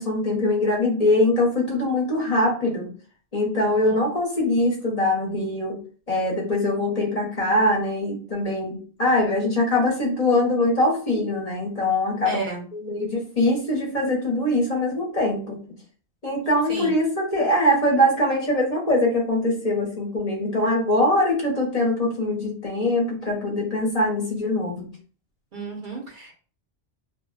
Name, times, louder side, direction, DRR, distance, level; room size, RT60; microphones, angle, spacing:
voice 1, 0.0-2.9 3.3-5.8 6.1-12.4 12.7-15.6 16.2-24.9, left 1 dB, 40° left, -1 dB, 0.7 m, -22 dB
voice 2, 12.3-12.6 16.7-16.9 25.5-26.3, right 3 dB, 55° right, 1 dB, 0.7 m, -32 dB
2.1 x 2.1 x 3.7 m, 0.40 s
omnidirectional pair, 1.1 m